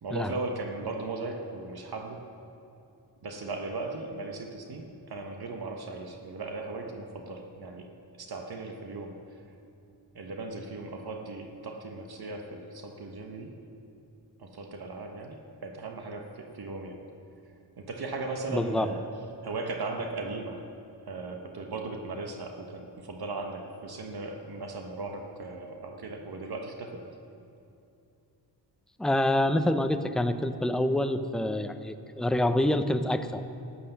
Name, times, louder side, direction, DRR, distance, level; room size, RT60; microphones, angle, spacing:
voice 1, 0.0-2.2 3.2-7.9 8.1-9.2 10.1-13.6 14.4-17.1 17.8-19.1 19.4-20.6 21.1-27.0, right 3 dB, 60° right, 3 dB, 1.2 m, -37 dB
voice 2, 18.5-18.9 29.0-33.4, left 1 dB, ahead, 9 dB, 0.5 m, -26 dB
13.5 x 8.6 x 6.8 m, 2.6 s
cardioid pair, 95°, 42 cm